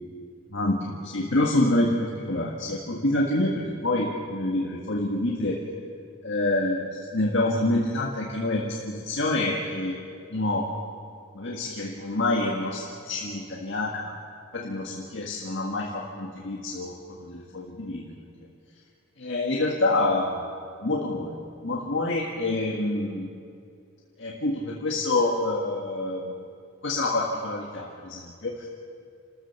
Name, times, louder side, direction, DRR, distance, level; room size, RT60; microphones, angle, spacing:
voice 1, 0.5-5.6 6.2-10.0 10.3-10.7 11.3-14.1 14.5-18.2 19.2-20.4 20.8-23.3 24.2-26.3 26.8-28.7, left 2 dB, 55° left, -1 dB, 1.8 m, -27 dB
30.0 x 14.0 x 7.2 m, 2.4 s
head